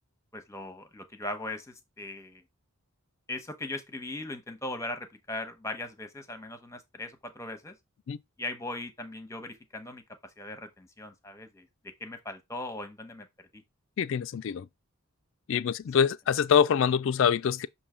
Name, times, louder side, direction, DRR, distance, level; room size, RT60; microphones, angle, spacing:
voice 1, 0.3-2.4 3.3-7.8 8.4-11.7 12.0-13.3 13.5-13.6, left 2 dB, 15° left, 0.9 m, -39 dB
voice 2, 14.0-14.7 15.5-17.7, left 7 dB, 60° left, 0.3 m, -25 dB
7.0 x 2.8 x 4.9 m
head